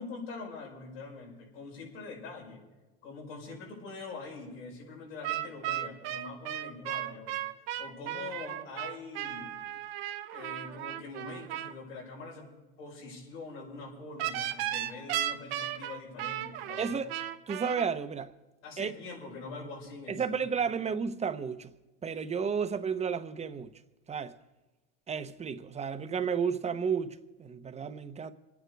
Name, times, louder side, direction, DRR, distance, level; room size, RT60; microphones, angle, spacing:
voice 1, 0.0-2.6 3.0-7.4 7.8-9.5 10.3-12.5 12.8-17.0 18.6-20.2, left 3 dB, 85° left, 6.1 m, -44 dB
sound 1, 5.2-11.7 14.2-17.8, right 13 dB, 75° right, 1.2 m, -35 dB
voice 2, 16.8-17.1 17.5-18.3 18.8-18.9 20.1-21.7 22.0-23.7 24.1-24.4 25.1-28.3, right 6 dB, 20° right, 0.9 m, -32 dB
26.0 x 9.4 x 4.7 m
supercardioid pair, 105°, 30 cm